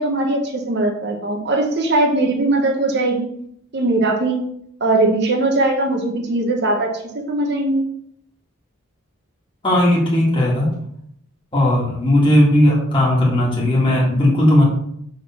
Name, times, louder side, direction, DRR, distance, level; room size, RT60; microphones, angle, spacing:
voice 1, 0.0-3.3 3.7-4.4 4.8-7.8, right 2 dB, 50° right, 2 dB, 0.9 m, -20 dB
voice 2, 9.6-10.7 11.5-14.6, left 1 dB, 25° left, -5 dB, 2.1 m, -16 dB
6.4 x 3.7 x 5.9 m, 0.70 s
head